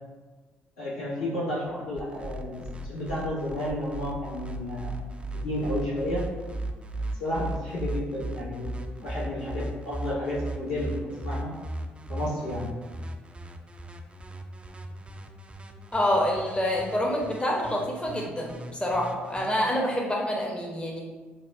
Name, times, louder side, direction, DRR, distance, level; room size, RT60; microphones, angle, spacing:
voice 1, 0.8-4.9 5.3-6.3 7.2-8.7 9.0-11.5 12.1-12.7, left 1 dB, 80° left, -8 dB, 1.2 m, -32 dB
sound 1, 2.0-19.5, right 2 dB, 20° right, 0.4 m, -37 dB
voice 2, 15.9-21.0, left 1 dB, 15° left, -1 dB, 0.7 m, -27 dB
5.5 x 2.2 x 2.4 m, 1.3 s
hypercardioid pair, 50°, 6 cm